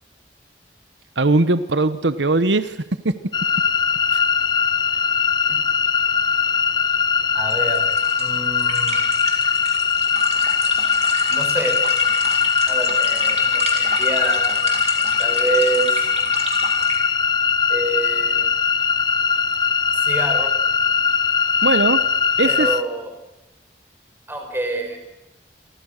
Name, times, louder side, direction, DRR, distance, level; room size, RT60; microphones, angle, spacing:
voice 1, 1.2-2.8 3.0-3.1 4.1-4.2 21.6-22.0 22.4-22.7, right 2 dB, 90° right, 13 dB, 1.1 m, -19 dB
sound 1, 3.3-22.8, left 6 dB, 25° left, 0.8 m, -20 dB
voice 2, 7.3-7.9 8.2-9.1 11.3-11.8 12.7-14.6 15.2-16.0 17.7-18.5 19.9-20.5 22.4-23.1 24.3-25.0, right 2 dB, 15° right, 4 dB, 4.9 m, -27 dB
sound 2, 7.5-17.0, right 4 dB, 40° right, 4.9 m, -32 dB
29.0 x 23.5 x 6.6 m, 0.93 s
head